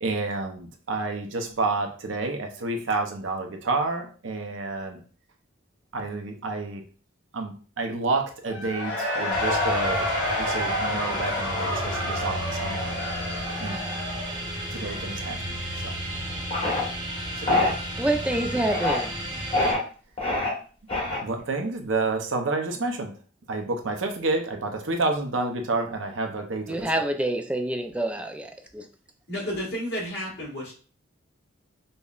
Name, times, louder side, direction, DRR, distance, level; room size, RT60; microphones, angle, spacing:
voice 1, 0.0-5.0 5.9-6.8 7.3-10.1 10.4-13.0 13.6-13.8 14.7-15.4 15.8-15.9 17.4-17.8 21.2-23.1 23.5-26.9, right 3 dB, 70° right, 4 dB, 0.6 m, -29 dB
Cheering / Crowd, 8.5-15.2, left 1 dB, 90° left, 1.0 m, -29 dB
sound 1, 9.3-19.7, right 1 dB, 25° right, 0.9 m, -33 dB
sound 2, 16.5-16.8 17.5-17.7 18.6-19.0 19.5-19.8 20.2-20.5 20.9-21.4, left 2 dB, 30° left, 1.3 m, -24 dB
voice 2, 18.0-19.1 26.7-28.9, right 1 dB, 5° right, 6 dB, 0.3 m, -27 dB
voice 3, 29.3-30.7, equal, 60° left, -4 dB, 1.6 m, -31 dB
5.3 x 2.1 x 2.3 m, 0.40 s
head